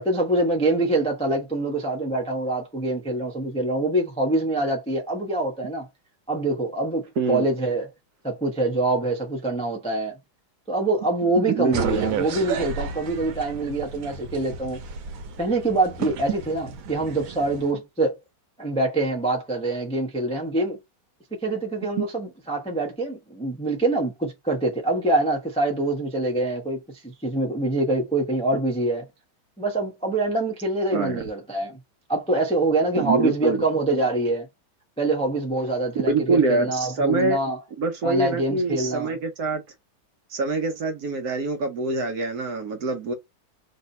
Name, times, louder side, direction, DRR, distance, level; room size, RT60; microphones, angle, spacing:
voice 1, 0.0-5.9 6.3-7.9 8.2-10.2 10.7-14.8 15.4-18.2 18.6-20.8 21.4-29.1 29.6-31.8 32.1-34.5 35.0-37.6 38.0-39.1, right 2 dB, 5° left, 0.4 m, -25 dB
voice 2, 11.4-12.0 22.0-22.1 30.9-31.2 33.0-33.6 36.1-37.4 37.8-39.6 40.3-43.1, right 3 dB, 60° right, 1.1 m, -25 dB
sound 1, 11.7-17.7, right 6 dB, 85° right, 1.5 m, -32 dB
3.3 x 2.7 x 4.1 m
omnidirectional pair, 2.2 m